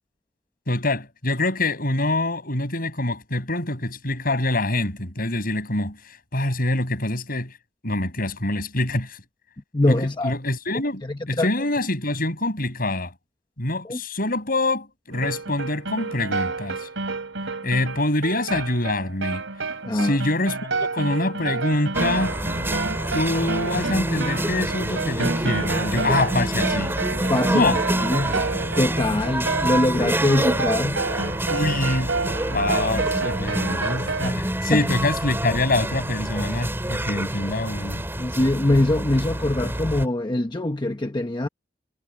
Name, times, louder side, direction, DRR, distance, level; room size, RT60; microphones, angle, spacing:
voice 1, 0.7-7.5 7.8-9.2 9.9-13.1 13.6-16.9 17.6-19.4 19.9-22.3 23.1-27.0 27.5-27.8 31.5-32.1 32.5-38.0, left 2 dB, 50° left, 6.1 m, -25 dB
voice 2, 9.7-10.3 11.1-11.5 13.9-14.0 19.8-20.2 27.3-27.7 28.0-28.4 28.8-31.0 34.7-34.8 38.2-41.5, left 1 dB, 25° left, 1.0 m, -23 dB
sound 1, 15.1-34.3, right 3 dB, 85° right, 3.8 m, -29 dB
sound 2, 21.9-40.1, right 1 dB, 15° right, 3.4 m, -27 dB
head